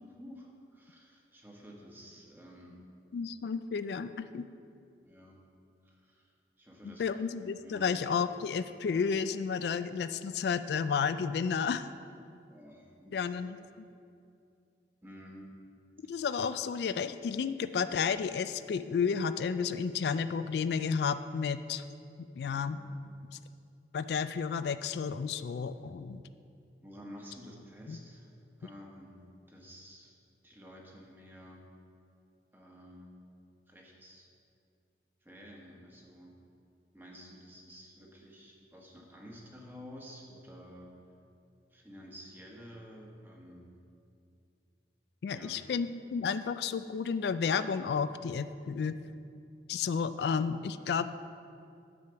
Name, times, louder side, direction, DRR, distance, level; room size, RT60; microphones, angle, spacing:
voice 1, 0.2-2.9 5.0-5.4 5.8-6.3 6.6-7.1 7.6-8.0 12.5-13.4 15.0-15.5 22.5-22.9 26.8-28.3 28.6-30.2 30.4-31.7 32.5-33.2 33.7-34.3 35.2-36.4 36.9-41.0 41.7-43.8 45.3-45.6, equal, 10° right, -1 dB, 1.2 m, -51 dB
voice 2, 3.1-4.5 6.8-11.9 13.1-13.9 16.1-21.8 22.4-22.8 23.9-26.2 27.9-28.0 45.2-48.9 49.7-51.1, left 6 dB, 65° left, 12 dB, 0.3 m, -32 dB
9.6 x 4.9 x 6.9 m, 2.4 s
head